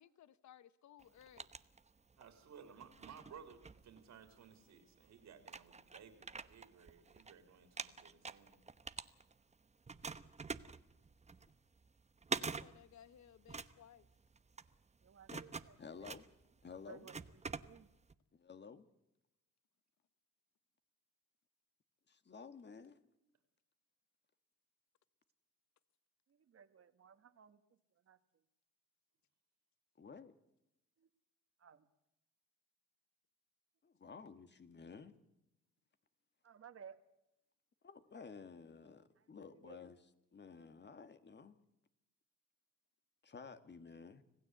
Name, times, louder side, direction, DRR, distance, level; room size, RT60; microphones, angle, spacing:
voice 1, 0.0-1.5 12.3-14.1, left 10 dB, 65° left, 1.1 m, -61 dB
sound 1, 1.0-2.3 2.8-4.5 5.0-5.1 5.4-7.3 7.6-9.5 9.9-18.1, right 4 dB, 20° right, 1.0 m, -46 dB
voice 2, 2.2-8.6, right 7 dB, 70° right, 3.6 m, -58 dB
voice 3, 15.0-16.1 16.7-17.9 26.3-27.6 28.0-28.4 31.0-31.1 31.6-31.9 36.4-37.0 39.2-39.8, right 7 dB, 50° right, 1.9 m, -59 dB
voice 4, 15.8-16.2 16.6-17.1 18.3-18.9 22.1-23.0 30.0-30.4 33.8-35.1 37.8-40.0 40.3-41.6 43.2-44.2, left 5 dB, 35° left, 1.8 m, -53 dB
26.0 x 16.0 x 8.1 m
cardioid pair, 90°, 30 cm